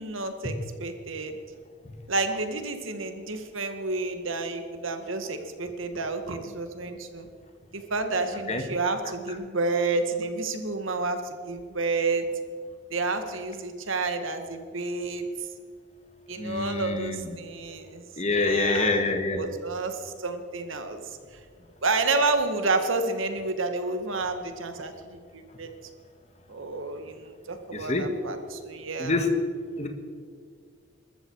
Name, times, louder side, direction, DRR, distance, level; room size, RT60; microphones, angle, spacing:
voice 1, 0.0-1.4 2.1-7.3 7.7-12.3 12.9-15.3 16.3-21.0 21.8-25.7 26.5-29.2, right 3 dB, 85° right, 7 dB, 1.8 m, -30 dB
voice 2, 16.4-17.2 18.2-19.4 27.9-28.0 29.0-29.3 29.8-29.9, left 3 dB, 35° left, 5 dB, 1.7 m, -26 dB
22.0 x 13.5 x 4.8 m, 2.1 s
head